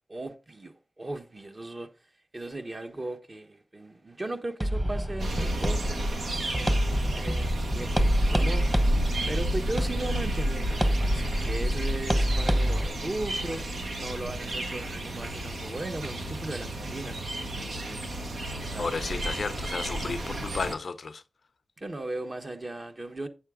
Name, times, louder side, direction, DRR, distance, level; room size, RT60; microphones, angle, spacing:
voice 1, 0.1-1.9 2.3-6.2 7.0-8.7 9.3-13.7 14.0-18.9 20.2-20.7 21.8-23.3, right 2 dB, 45° right, 1.1 m, -37 dB
sound 1, 4.6-12.9, equal, 20° right, 1.2 m, -27 dB
sound 2, 5.2-20.7, right 1 dB, 90° right, 1.3 m, -31 dB
voice 2, 18.8-21.2, left 4 dB, 75° left, 0.5 m, -33 dB
8.5 x 6.4 x 3.7 m
cardioid pair, 45°, 0 cm